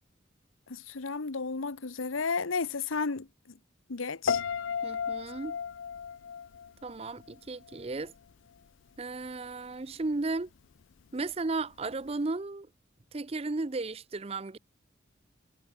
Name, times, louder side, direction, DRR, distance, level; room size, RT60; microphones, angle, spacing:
voice 1, 0.7-3.6 3.9-4.4, left 4 dB, 85° left, 1.0 m, -33 dB
Piano, 4.3-7.4 7.6-8.1, left 7 dB, 70° left, 0.4 m, -34 dB
voice 2, 4.8-5.6 6.8-8.1 9.0-10.5 11.1-12.7 13.1-14.6, right 3 dB, 30° right, 0.5 m, -34 dB
head